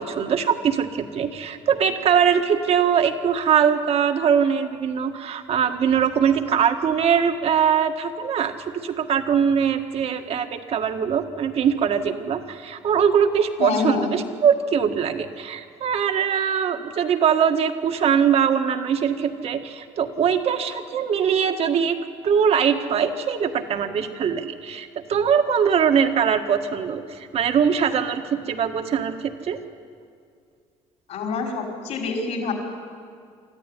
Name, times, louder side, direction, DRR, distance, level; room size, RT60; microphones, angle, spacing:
voice 1, 0.0-22.0 22.2-29.6, right 7 dB, 55° right, 7 dB, 1.7 m, -22 dB
voice 2, 13.6-14.1 31.1-32.5, left 4 dB, 65° left, 1 dB, 5.1 m, -26 dB
25.5 x 14.0 x 10.0 m, 2.2 s
cardioid pair, 100°, 13 cm